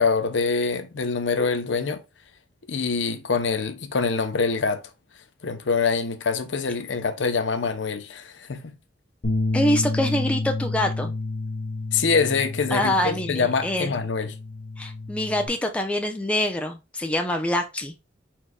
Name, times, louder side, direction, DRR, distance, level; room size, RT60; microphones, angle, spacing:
voice 1, 0.0-2.0 2.7-4.8 5.4-8.8 11.9-14.3, left 4 dB, 80° left, 0.7 m, -25 dB
Bass guitar, 9.2-15.5, left 2 dB, 50° left, 1.2 m, -30 dB
voice 2, 9.5-11.1 12.7-14.0 14.8-17.9, left 1 dB, 5° left, 0.6 m, -25 dB
4.5 x 4.5 x 2.2 m
head